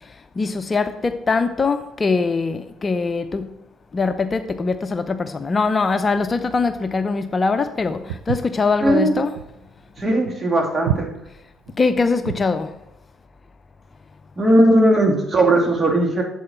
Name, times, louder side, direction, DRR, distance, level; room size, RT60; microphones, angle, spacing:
voice 1, 0.4-3.5 3.9-9.3 11.8-12.7, left 4 dB, 35° left, 0.7 m, -22 dB
Walk footsteps, 8.1-12.6, right 9 dB, 90° right, 0.4 m, -29 dB
voice 2, 8.8-9.2 10.0-11.1 14.4-16.2, right 1 dB, 30° right, 2.6 m, -17 dB
8.1 x 7.7 x 4.4 m
hypercardioid pair, 60°, 0 cm